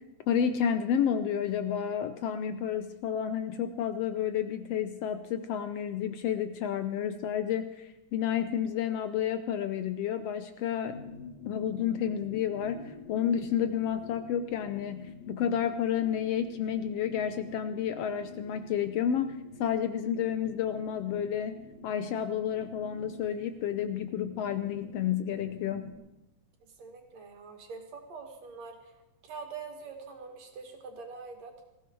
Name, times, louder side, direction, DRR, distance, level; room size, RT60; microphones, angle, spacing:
voice 1, 0.3-11.0 11.5-25.9, left 9 dB, 75° left, 9 dB, 1.5 m, -31 dB
sound 1, 10.9-25.9, left 4 dB, 60° left, 3.7 m, -47 dB
voice 2, 26.8-28.9 29.2-31.5, right 4 dB, 60° right, 4 dB, 3.2 m, -44 dB
19.5 x 15.5 x 4.6 m, 0.92 s
omnidirectional pair, 3.4 m